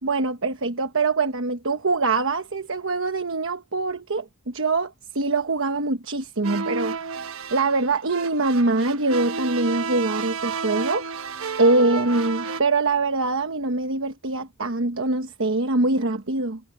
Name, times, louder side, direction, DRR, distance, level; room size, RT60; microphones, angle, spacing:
voice 1, 0.0-7.3 7.5-11.3 11.6-16.6, right 3 dB, 70° right, 1.2 m, -24 dB
sound 1, 6.4-12.6, right 4 dB, 85° right, 1.1 m, -31 dB
head